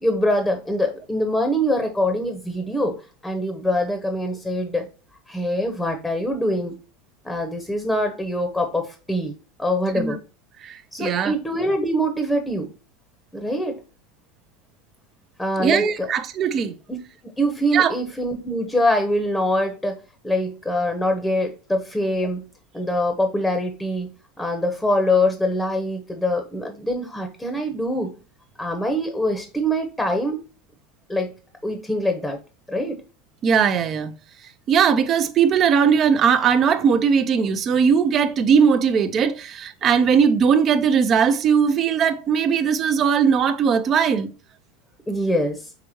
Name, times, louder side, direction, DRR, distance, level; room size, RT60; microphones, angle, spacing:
voice 1, 0.0-3.0 3.2-4.9 5.3-6.7 7.2-9.3 9.6-10.2 10.9-12.7 13.3-13.8 15.4-16.1 16.9-17.0 17.4-20.0 20.2-22.4 22.7-24.1 24.4-28.1 28.6-30.4 31.1-31.3 31.6-32.4 32.7-33.0 45.1-45.7, equal, 10° left, 0.8 m, -24 dB
voice 2, 10.6-11.3 15.6-16.7 17.7-17.9 33.4-34.1 34.7-44.3, right 7 dB, 40° right, 0.5 m, -19 dB
4.9 x 3.4 x 3.0 m
hypercardioid pair, 85°, 0 cm